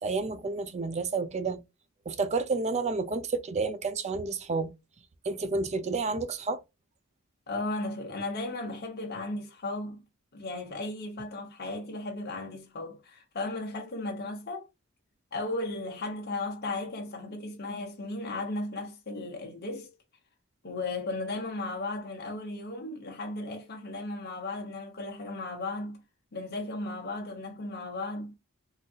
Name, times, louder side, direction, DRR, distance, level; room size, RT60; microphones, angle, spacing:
voice 1, 0.0-1.6 2.1-4.7 5.3-6.6, right 4 dB, 30° right, 0.4 m, -30 dB
voice 2, 7.5-10.0 10.3-14.7 15.3-19.9 20.6-26.0 26.3-28.3, left 2 dB, 45° left, 0.9 m, -35 dB
3.8 x 2.6 x 2.3 m
head